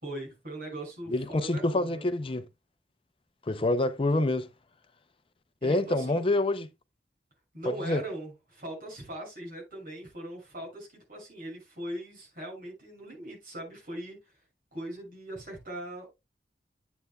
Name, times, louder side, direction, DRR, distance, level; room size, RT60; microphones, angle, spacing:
voice 1, 0.0-2.0 5.6-6.2 7.5-14.2 14.7-16.1, right 1 dB, 50° right, 6.6 m, -40 dB
voice 2, 1.1-2.4 3.5-4.5 5.6-6.7 7.7-8.0, left 2 dB, 30° left, 0.6 m, -27 dB
11.0 x 8.0 x 2.3 m
head